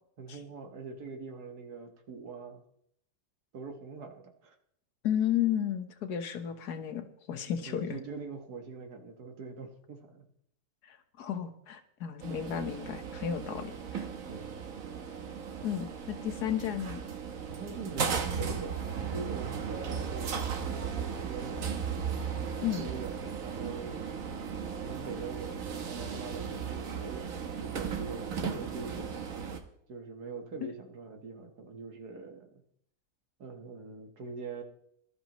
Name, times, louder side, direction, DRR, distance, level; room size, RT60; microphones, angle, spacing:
voice 1, 0.2-2.6 3.5-4.6 7.7-10.3 14.3-14.6 17.5-20.4 20.7-21.9 22.3-24.0 24.8-27.3 27.6-29.1 29.9-32.6 33.4-34.6, right 4 dB, 80° right, 4 dB, 2.1 m, -43 dB
voice 2, 5.0-8.0 10.8-14.0 15.6-17.0 22.6-22.9, left 9 dB, 85° left, 8 dB, 1.6 m, -33 dB
sound 1, 12.2-29.6, right 6 dB, 60° right, 1.5 m, -36 dB
19.5 x 12.5 x 3.1 m, 0.71 s
omnidirectional pair, 1.6 m